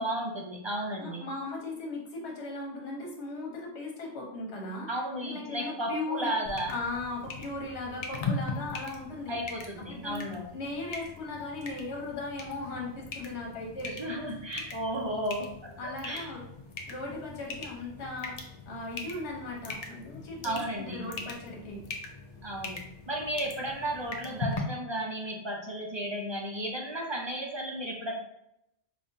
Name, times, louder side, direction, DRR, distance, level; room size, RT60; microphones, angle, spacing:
voice 1, 0.0-1.3 4.9-6.7 9.3-10.4 13.8-15.5 16.0-16.3 20.4-21.1 22.4-22.8 23.1-28.1, right 1 dB, 45° right, -1 dB, 0.3 m, -34 dB
voice 2, 1.0-4.9 5.2-6.3 6.7-9.3 9.8-10.2 10.5-14.0 15.8-16.4 16.9-21.8, left 2 dB, 75° left, -2 dB, 1.2 m, -37 dB
sound 1, 6.4-24.6, left 3 dB, 50° left, 0.4 m, -41 dB
5.0 x 2.3 x 2.7 m, 0.81 s
omnidirectional pair, 1.2 m